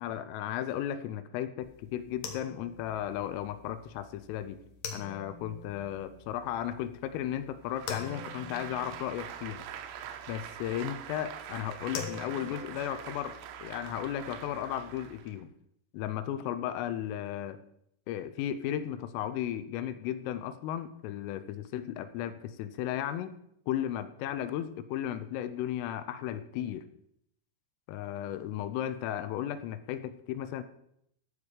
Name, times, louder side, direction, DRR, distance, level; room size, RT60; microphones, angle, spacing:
voice 1, 0.0-4.6 4.9-9.6 10.3-15.5 15.9-17.6 18.1-23.4 23.7-26.9 27.9-30.6, left 11 dB, 85° left, 12 dB, 3.3 m, -35 dB
sound 1, 1.6-15.2, left 6 dB, 65° left, 2.3 m, -46 dB
Applause, 7.7-15.4, right 10 dB, 80° right, 3.1 m, -44 dB
12.0 x 7.2 x 4.9 m, 0.75 s
omnidirectional pair, 5.8 m